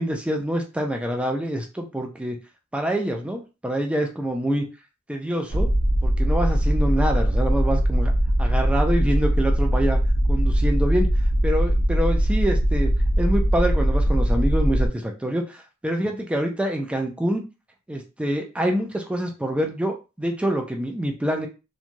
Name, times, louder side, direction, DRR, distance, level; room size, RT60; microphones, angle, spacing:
voice 1, 0.0-2.4 2.7-4.6 5.1-5.7 6.0-8.1 8.4-10.0 10.3-11.1 11.4-12.9 13.2-17.4 17.9-21.5, right 1 dB, 5° right, 3 dB, 0.3 m, -26 dB
sound 1, 5.5-14.9, equal, 65° left, 1.0 m, -21 dB
2.9 x 2.3 x 2.5 m, 0.29 s
head